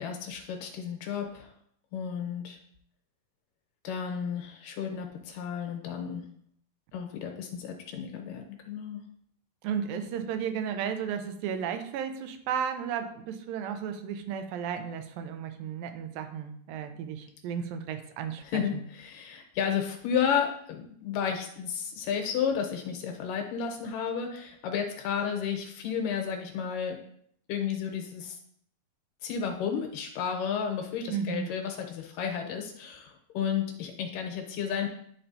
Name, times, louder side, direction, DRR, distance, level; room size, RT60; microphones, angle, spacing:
voice 1, 0.0-1.5 1.9-2.6 3.8-6.2 6.9-9.0 18.4-27.0 27.5-28.4 29.2-34.9, left 7 dB, 75° left, 3 dB, 2.4 m, -32 dB
voice 2, 9.6-18.8 31.1-31.5, right 7 dB, 90° right, 7 dB, 2.4 m, -34 dB
11.0 x 4.4 x 2.7 m, 0.66 s
omnidirectional pair, 4.1 m